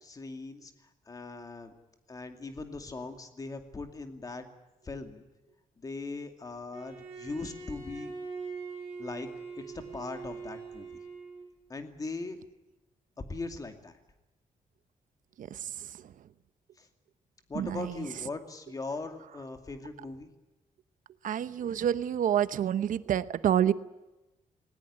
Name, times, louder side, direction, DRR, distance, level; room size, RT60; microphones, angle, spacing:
voice 1, 0.0-0.7 1.1-1.7 2.1-4.4 4.8-5.2 5.8-8.1 9.0-9.3 9.6-9.7 9.9-11.0 11.7-12.4 13.3-13.9 16.8-16.9 17.5-20.3, left 3 dB, 25° left, 6 dB, 2.4 m, -39 dB
Bowed string instrument, 6.7-11.6, right 4 dB, 15° right, 7.6 m, -42 dB
voice 2, 15.4-16.1 17.5-18.1 21.2-23.7, right 10 dB, 75° right, 14 dB, 0.9 m, -28 dB
20.0 x 20.0 x 9.9 m, 1.0 s
wide cardioid pair, 165°, 14 cm